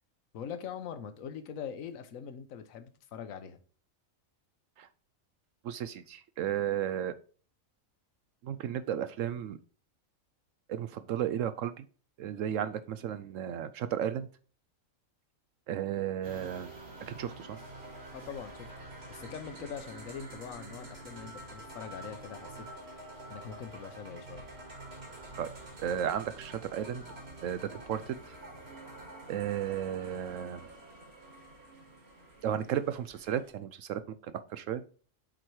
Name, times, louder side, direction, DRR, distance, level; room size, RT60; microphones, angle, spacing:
voice 1, 0.3-3.6 18.1-18.7 19.1-24.4, left 7 dB, 75° left, 1.3 m, -43 dB
voice 2, 5.6-7.1 8.4-9.6 10.7-11.8 12.2-14.3 15.7-16.7 17.1-17.6 25.4-25.5 25.8-27.0 27.4-28.3 29.3-30.6 32.4-34.8, right 10 dB, 70° right, 0.9 m, -34 dB
sound 1, 16.2-33.5, right 2 dB, 50° right, 2.4 m, -47 dB
7.7 x 4.5 x 4.7 m
omnidirectional pair, 1.4 m